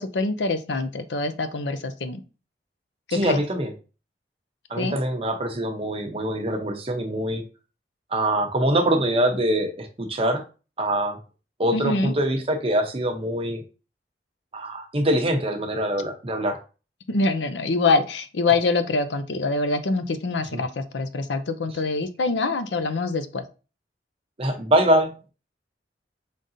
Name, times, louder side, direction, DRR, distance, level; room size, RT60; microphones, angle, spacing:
voice 1, 0.0-2.2 3.2-3.4 4.8-5.0 11.7-12.1 17.1-23.4, left 3 dB, 85° left, 10 dB, 0.6 m, -25 dB
voice 2, 3.1-3.7 4.7-7.4 8.1-10.4 10.8-11.2 11.6-13.6 14.5-16.6 20.5-20.6 24.4-25.1, right 1 dB, 35° right, 4 dB, 0.8 m, -24 dB
5.2 x 3.8 x 2.7 m, 0.33 s
head